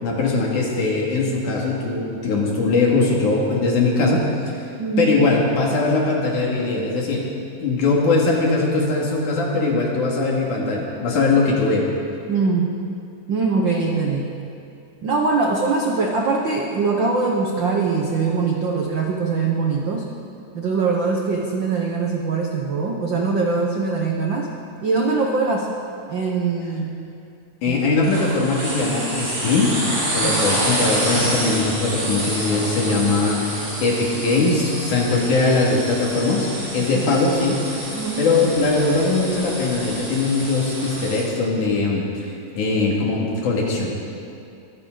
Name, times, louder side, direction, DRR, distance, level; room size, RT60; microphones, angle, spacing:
voice 1, 0.0-4.7 5.0-7.3 7.6-11.9 27.6-29.7 30.1-37.6 38.2-43.9, left 3 dB, 65° left, -2 dB, 3.7 m, -21 dB
voice 2, 4.8-5.1 12.3-12.7 13.3-14.3 15.0-20.1 20.5-24.5 24.8-25.7 26.1-26.9 27.7-28.0 30.2-30.5 36.8-37.1 37.9-38.3, right 4 dB, 80° right, 0 dB, 1.0 m, -22 dB
sound 1, 28.0-41.2, right 1 dB, 45° right, 5.8 m, -27 dB
22.5 x 15.5 x 4.0 m, 2.6 s
omnidirectional pair, 3.9 m